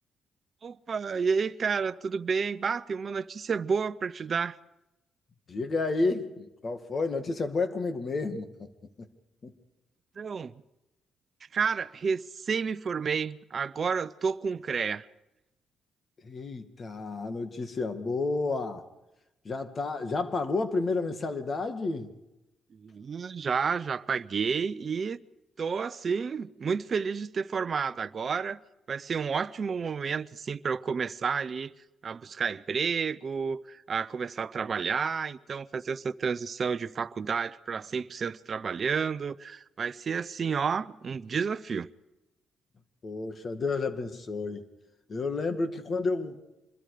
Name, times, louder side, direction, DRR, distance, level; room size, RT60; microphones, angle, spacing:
voice 1, 0.6-4.6 10.2-10.5 11.5-15.1 22.7-25.2 25.6-28.6 28.9-31.7 32.0-41.9, right 6 dB, 45° right, 0.7 m, -30 dB
voice 2, 5.5-8.7 9.4-9.5 16.2-18.8 19.4-22.1 43.0-44.7 45.1-46.4, left 3 dB, 40° left, 2.3 m, -31 dB
26.0 x 22.0 x 5.1 m
cardioid pair, 90°, 0 cm